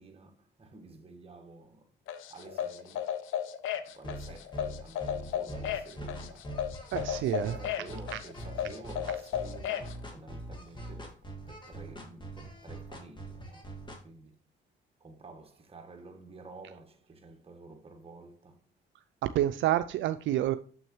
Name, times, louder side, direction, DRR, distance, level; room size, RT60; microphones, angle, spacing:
voice 1, 0.0-1.9 2.3-3.1 3.7-6.5 7.4-13.7 14.0-14.3 15.0-18.7, right 3 dB, 30° right, 1.6 m, -51 dB
sound 1, 2.1-9.9, left 10 dB, 85° left, 0.7 m, -34 dB
sound 2, 4.0-14.0, right 1 dB, 25° left, 2.0 m, -42 dB
voice 2, 6.9-7.6 8.1-8.2 19.2-20.6, right 13 dB, 70° right, 0.4 m, -28 dB
7.0 x 6.2 x 3.1 m
cardioid pair, 85°, 20 cm